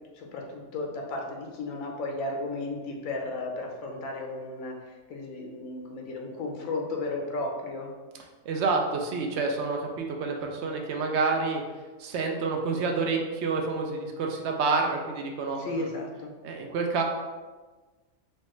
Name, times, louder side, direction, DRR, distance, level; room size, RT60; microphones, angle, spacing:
voice 1, 0.1-7.9 15.6-16.3, left 2 dB, 80° left, 1 dB, 1.1 m, -34 dB
voice 2, 8.5-11.6 12.0-15.9 16.4-17.0, right 4 dB, 65° right, 2 dB, 0.7 m, -28 dB
4.4 x 2.3 x 3.0 m, 1.3 s
omnidirectional pair, 1.4 m